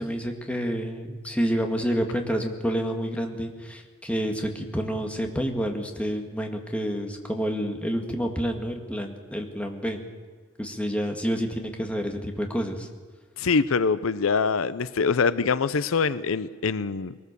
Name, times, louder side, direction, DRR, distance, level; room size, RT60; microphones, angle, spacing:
voice 1, 0.0-10.0 10.6-12.9, equal, 5° left, 3 dB, 2.0 m, -29 dB
voice 2, 13.4-17.2, left 5 dB, 80° left, 16 dB, 0.6 m, -24 dB
22.0 x 19.0 x 6.9 m, 1.5 s
head